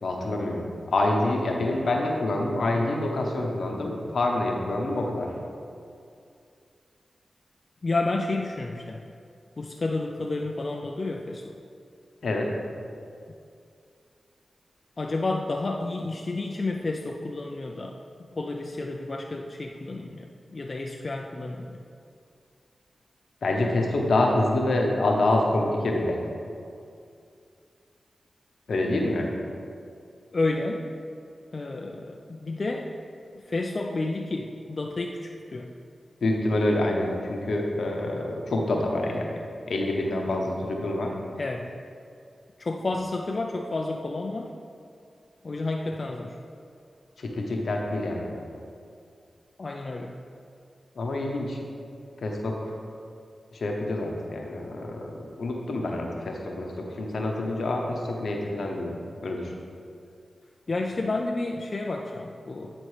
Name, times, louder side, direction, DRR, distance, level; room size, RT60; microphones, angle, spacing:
voice 1, 0.0-5.3 12.2-12.5 23.4-26.2 28.7-29.3 36.2-39.3 39.7-41.1 47.2-48.3 50.9-51.6 52.2-52.7 53.5-59.5, left 2 dB, 80° left, 1 dB, 0.9 m, -27 dB
voice 2, 7.8-9.0 9.6-11.6 15.0-18.0 18.3-21.8 30.3-30.9 31.5-32.9 33.3-35.7 41.4-41.7 42.6-44.5 45.4-46.4 49.6-50.1 60.7-62.7, left 2 dB, 55° left, 2 dB, 0.4 m, -30 dB
11.0 x 4.3 x 3.3 m, 2.5 s
cardioid pair, 40°, 0 cm